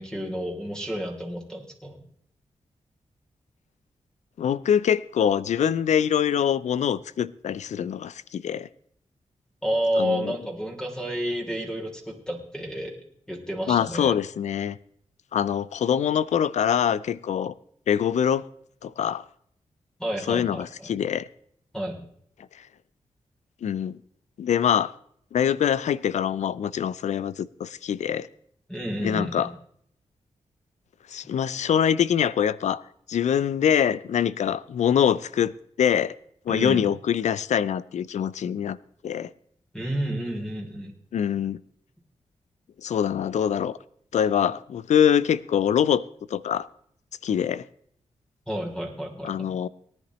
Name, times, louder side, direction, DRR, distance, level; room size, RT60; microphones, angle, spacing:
voice 1, 0.0-2.0 9.6-12.9 13.3-14.2 20.0-20.9 21.7-22.0 28.7-29.5 36.5-36.9 39.7-40.9 48.5-49.5, equal, 5° left, 3.2 m, -30 dB
voice 2, 4.4-8.7 10.0-10.3 13.7-14.8 15.3-17.5 17.9-18.4 18.8-19.2 20.3-21.3 23.6-24.0 24.4-24.9 25.3-28.3 29.0-29.5 31.1-32.8 33.1-36.1 36.5-38.8 39.0-39.3 41.1-41.6 42.8-43.8 44.1-46.1 46.3-46.7 47.2-47.6 49.2-49.7, left 8 dB, 80° left, 0.5 m, -24 dB
18.5 x 10.5 x 3.1 m
cardioid pair, 70°, 12 cm